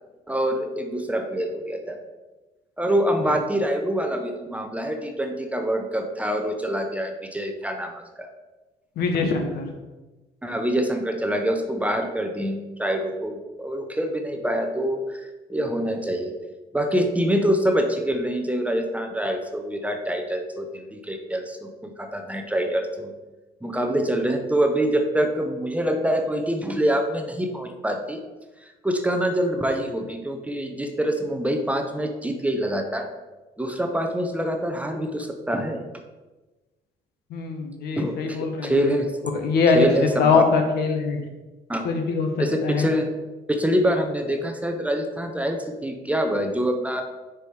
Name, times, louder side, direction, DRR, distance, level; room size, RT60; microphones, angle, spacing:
voice 1, 0.3-2.0 2.8-8.3 10.4-16.3 16.7-23.1 23.6-28.2 28.6-33.1 33.6-35.8 38.0-39.1 39.7-40.4 41.7-41.9 42.4-43.1 43.5-47.0, equal, 10° right, 5 dB, 0.7 m, -25 dB
voice 2, 9.0-9.7 37.3-38.8 39.3-41.2 41.8-42.3 42.6-42.9, left 4 dB, 70° left, 4 dB, 1.3 m, -22 dB
6.4 x 4.7 x 4.6 m, 1.2 s
cardioid pair, 110°, 17 cm